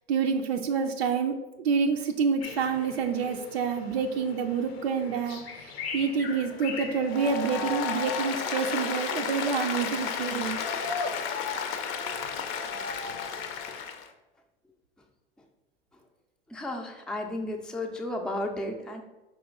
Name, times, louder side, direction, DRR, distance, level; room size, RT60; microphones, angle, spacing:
voice 1, 0.1-10.6, right 6 dB, 85° right, 4 dB, 0.5 m, -28 dB
sound 1, 2.4-8.2, left 5 dB, 85° left, 0.7 m, -41 dB
Applause, 7.0-14.1, left 6 dB, 45° left, 0.6 m, -32 dB
voice 2, 16.5-19.0, left 1 dB, ahead, 2 dB, 0.5 m, -33 dB
4.9 x 3.0 x 3.6 m, 1.1 s
hypercardioid pair, 90°, 30 cm